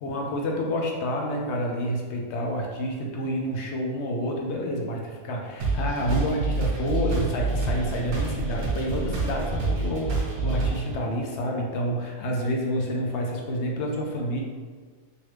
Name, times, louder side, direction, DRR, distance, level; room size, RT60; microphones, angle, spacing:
voice 1, 0.0-14.4, equal, 65° left, 0 dB, 0.8 m, -29 dB
sound 1, 5.6-11.0, right 3 dB, 55° right, 1.0 m, -27 dB
3.1 x 2.7 x 3.2 m, 1.5 s
omnidirectional pair, 1.5 m